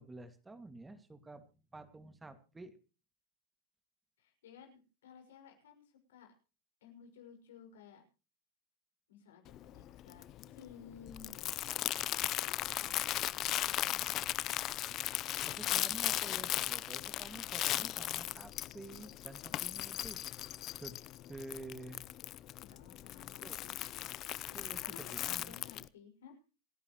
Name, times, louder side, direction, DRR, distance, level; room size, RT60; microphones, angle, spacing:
voice 1, 0.0-1.5 1.7-2.8 15.4-20.3 20.8-21.0 21.3-22.1 23.4-23.6 24.5-25.5, right 2 dB, 10° right, 10 dB, 2.1 m, -50 dB
voice 2, 4.2-6.3 6.8-8.0 9.1-14.6 22.5-24.1 24.5-26.4, left 7 dB, 85° left, 3 dB, 5.9 m, -57 dB
Crumpling crinkling, 9.5-25.9, left 14 dB, 45° left, 0.7 m, -37 dB
27.5 x 10.5 x 3.1 m, 0.34 s
hypercardioid pair, 110°, 0 cm